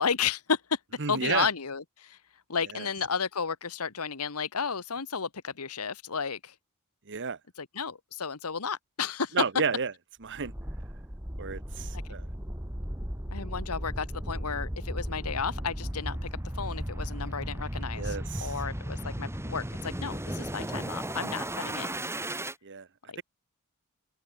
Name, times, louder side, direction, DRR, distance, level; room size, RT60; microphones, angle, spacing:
voice 1, 0.0-0.8 1.1-2.2 2.5-6.5 7.6-9.4 11.9-12.0 13.3-16.2 16.5-21.9 23.1-23.2, left 6 dB, 80° left, 1.3 m, -32 dB
voice 2, 1.0-1.5 2.7-2.9 7.1-7.4 9.3-9.9 10.2-10.5 11.4-12.2 17.9-18.6 22.6-22.9, right 5 dB, 55° right, 1.2 m, -31 dB
sound 1, 10.3-22.5, right 1 dB, 10° right, 3.4 m, -35 dB
open air
head